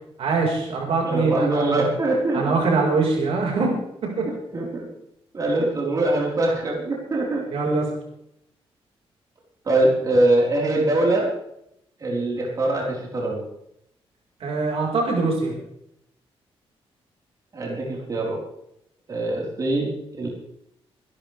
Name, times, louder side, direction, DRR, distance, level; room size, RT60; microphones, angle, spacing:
voice 1, 0.2-1.9 2.3-3.8 4.0-4.3 7.5-7.9 14.4-15.5, right 4 dB, 70° right, -1 dB, 5.2 m, -23 dB
voice 2, 1.0-2.6 4.2-4.9 5.3-7.4 7.7-7.8 9.6-11.3 12.0-13.4 17.5-18.4 19.1-20.3, right 2 dB, 35° right, -3 dB, 4.5 m, -23 dB
24.5 x 12.5 x 3.5 m, 0.77 s
cardioid pair, 135°, 10 cm